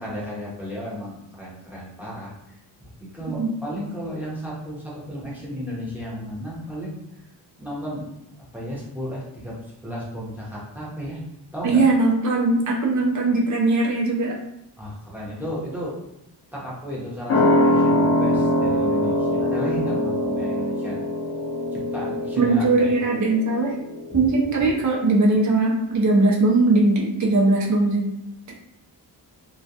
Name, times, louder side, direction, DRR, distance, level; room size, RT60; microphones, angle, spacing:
voice 1, 0.0-2.6 3.0-7.0 7.6-8.0 8.4-9.6 9.8-11.2 11.5-11.8 14.8-16.0 16.5-21.0 21.7-22.9 24.1-24.2, equal, 5° right, -7 dB, 0.7 m, -33 dB
voice 2, 11.6-14.4 22.4-23.7 24.1-28.1, right 2 dB, 45° right, -2 dB, 0.6 m, -20 dB
sound 1, 17.3-24.4 24.7-24.8, left 1 dB, 30° left, 0.6 m, -23 dB
2.3 x 2.1 x 2.7 m, 0.82 s
cardioid pair, 115°, 43 cm